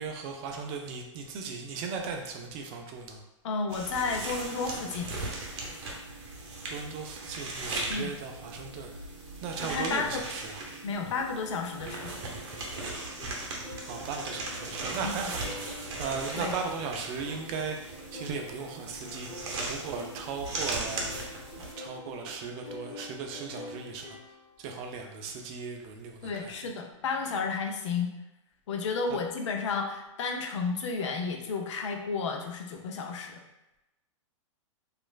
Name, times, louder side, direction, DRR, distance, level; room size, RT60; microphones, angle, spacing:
voice 1, 0.0-3.2 6.7-8.9 9.4-10.6 13.8-17.8 18.1-19.3 19.7-21.3 21.8-24.2 24.6-26.6 29.1-29.2, right 5 dB, 35° right, 3 dB, 0.4 m, -37 dB
voice 2, 3.4-5.1 7.9-8.1 9.6-10.2 10.8-12.3 15.0-15.1 16.4-16.6 26.2-28.1 28.7-33.4, left 4 dB, 65° left, 3 dB, 0.5 m, -32 dB
sound 1, 3.7-21.7, right 2 dB, 55° right, 0.7 m, -38 dB
sound 2, 11.1-24.7, left 2 dB, 25° left, 1.2 m, -47 dB
2.9 x 2.4 x 2.2 m, 0.95 s
hypercardioid pair, 120°, 17 cm